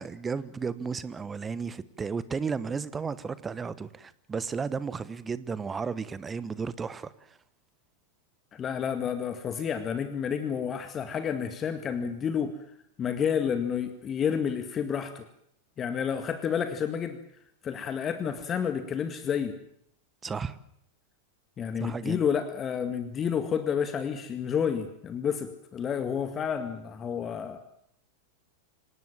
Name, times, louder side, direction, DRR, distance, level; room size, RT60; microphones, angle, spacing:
voice 1, 0.0-7.4 20.2-20.6 21.8-22.2, right 5 dB, 15° right, 1.1 m, -34 dB
voice 2, 8.5-12.6 13.0-15.3 15.8-17.2 17.6-19.6 21.6-27.6, left 7 dB, 25° left, 1.9 m, -30 dB
26.5 x 19.0 x 7.3 m
figure-of-eight pair, 90°, 0 cm